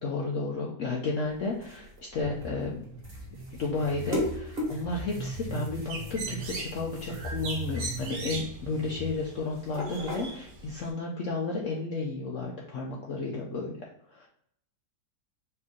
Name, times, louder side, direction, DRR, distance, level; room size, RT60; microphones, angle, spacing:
voice 1, 0.0-2.8 3.5-13.7 14.1-14.3, left 3 dB, 65° left, -2 dB, 0.8 m, -32 dB
sound 1, 1.2-10.8, equal, 35° right, 1.4 m, -39 dB
sound 2, 2.2-9.1, right 2 dB, 60° right, 1.4 m, -40 dB
Bird, 5.5-10.9, right 3 dB, 80° right, 1.4 m, -41 dB
4.5 x 2.6 x 3.7 m, 0.69 s
omnidirectional pair, 1.9 m